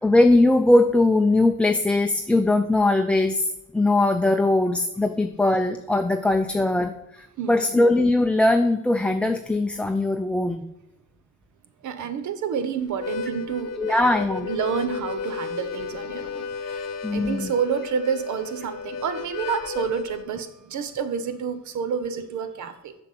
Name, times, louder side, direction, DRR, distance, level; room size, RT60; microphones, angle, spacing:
voice 1, 0.0-3.5 3.7-10.6 13.8-14.5 17.0-17.5, left 2 dB, 5° left, 6 dB, 0.5 m, -20 dB
voice 2, 7.4-7.8 11.8-23.0, right 7 dB, 70° right, 11 dB, 1.1 m, -29 dB
Harmonica, 12.9-20.3, left 5 dB, 60° left, 0.9 m, -33 dB
7.5 x 5.9 x 7.4 m, 0.87 s
cardioid pair, 90°, 30 cm